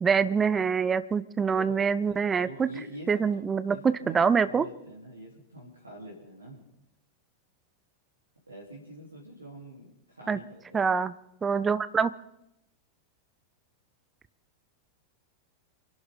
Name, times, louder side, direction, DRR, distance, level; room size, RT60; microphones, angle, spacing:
voice 1, 0.0-2.7 3.1-4.6 10.3-10.4 10.7-11.1 11.4-12.1, right 6 dB, 20° right, 15 dB, 0.8 m, -25 dB
voice 2, 1.5-6.6 8.5-10.9, equal, 80° right, -4 dB, 3.6 m, -46 dB
29.0 x 11.5 x 3.8 m, 0.85 s
figure-of-eight pair, 90°, 0 cm